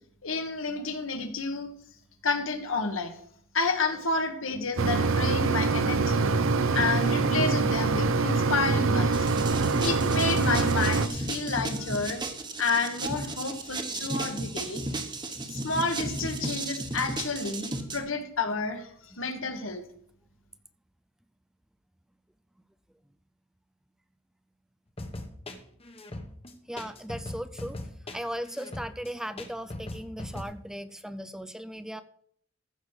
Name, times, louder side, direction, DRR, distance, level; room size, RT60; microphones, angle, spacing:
voice 1, 0.2-1.7 2.2-3.1 3.5-6.3 6.7-9.3 9.8-12.2 12.6-15.0 15.5-19.8, left 3 dB, 75° left, 7 dB, 1.5 m, -30 dB
Mechanisms, 4.8-11.1, right 4 dB, 75° right, 0.7 m, -24 dB
sound 1, 9.1-18.0, right 2 dB, 20° right, 1.2 m, -34 dB
sound 2, 25.0-30.4, left 1 dB, 30° left, 1.2 m, -39 dB
voice 2, 26.7-27.8 28.1-32.0, equal, 5° right, 11 dB, 0.4 m, -37 dB
14.5 x 6.5 x 4.7 m, 0.64 s
head